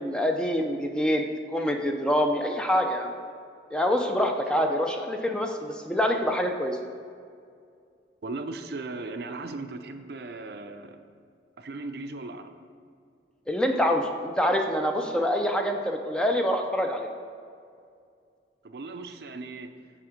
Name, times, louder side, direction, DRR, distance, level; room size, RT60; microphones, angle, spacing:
voice 1, 0.0-3.1 3.7-6.8 13.5-17.1, equal, 5° left, 3 dB, 0.4 m, -26 dB
voice 2, 8.2-11.0 11.6-12.5 18.6-19.7, right 3 dB, 65° right, 8 dB, 0.5 m, -37 dB
9.1 x 3.6 x 5.0 m, 2.3 s
head